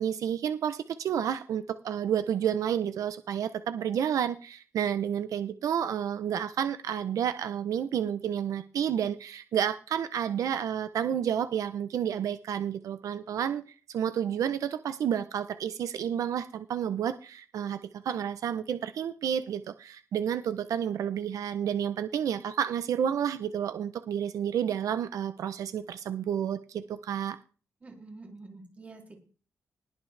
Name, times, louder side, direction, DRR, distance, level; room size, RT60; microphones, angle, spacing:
voice 1, 0.0-13.6 13.9-27.4, right 9 dB, 80° right, 11 dB, 0.6 m, -30 dB
voice 2, 27.8-29.2, right 3 dB, 25° right, 2 dB, 2.6 m, -47 dB
20.0 x 7.2 x 3.3 m, 0.37 s
wide cardioid pair, 160°, 6 cm